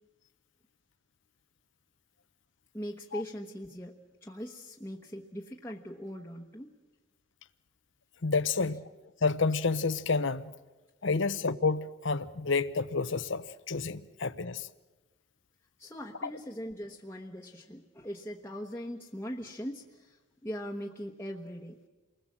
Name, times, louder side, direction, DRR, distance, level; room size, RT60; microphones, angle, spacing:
voice 1, 2.7-6.7 11.1-11.2 15.8-21.8, equal, 10° left, 1.2 m, -41 dB
voice 2, 8.2-8.8 9.2-10.5 11.0-14.7, left 4 dB, 60° left, 0.8 m, -29 dB
28.5 x 20.0 x 7.5 m
head